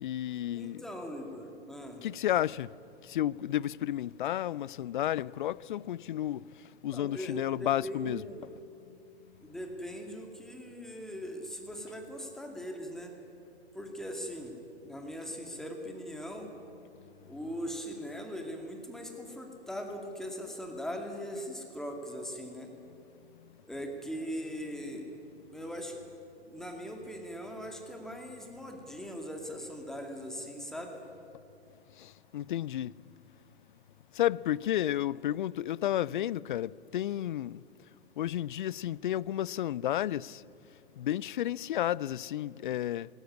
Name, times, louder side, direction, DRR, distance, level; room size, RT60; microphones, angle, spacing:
voice 1, 0.0-0.8 2.0-2.7 3.1-6.4 6.8-8.2 32.3-32.9 34.2-37.6 38.2-40.4 41.0-43.1, left 12 dB, 50° left, 0.5 m, -31 dB
voice 2, 0.5-2.0 6.9-8.5 9.4-13.1 13.7-14.5 14.8-16.5 17.3-22.7 23.7-25.0 25.5-25.9 26.5-30.9, equal, ahead, 2.3 m, -40 dB
19.5 x 18.0 x 9.8 m
figure-of-eight pair, 115°, 34 cm